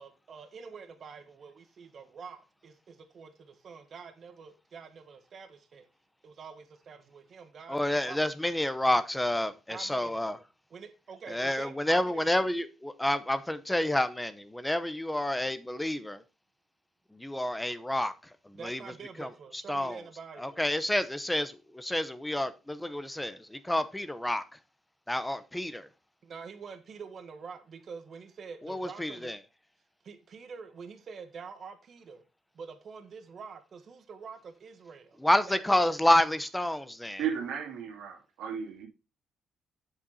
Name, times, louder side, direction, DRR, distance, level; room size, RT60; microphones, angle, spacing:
voice 1, 0.0-5.8 6.2-8.3 9.7-10.2 10.7-12.3 18.5-20.6 26.2-29.3 30.0-32.2 32.5-35.2 35.5-35.6, right 5 dB, 50° right, 1.5 m, -46 dB
voice 2, 7.7-10.4 11.3-16.2 17.1-18.1 18.5-18.8 19.2-19.3 19.7-20.0 20.4-24.4 25.1-25.9 28.6-29.4 35.2-37.2, left 1 dB, 10° left, 0.8 m, -29 dB
voice 3, 37.2-38.9, right 8 dB, 85° right, 2.7 m, -34 dB
7.5 x 7.3 x 4.1 m
cardioid pair, 90°, 0 cm